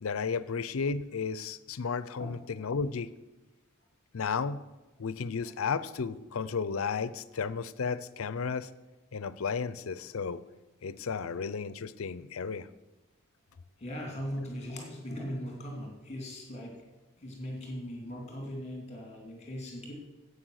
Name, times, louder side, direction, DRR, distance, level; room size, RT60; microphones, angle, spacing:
voice 1, 0.0-3.1 4.1-4.6 5.0-8.7 9.1-10.4 10.8-12.7, left 5 dB, 75° left, 16 dB, 0.5 m, -33 dB
voice 2, 13.8-16.7 17.2-19.9, equal, 30° left, 0 dB, 2.8 m, -39 dB
11.5 x 8.4 x 6.4 m, 1.1 s
head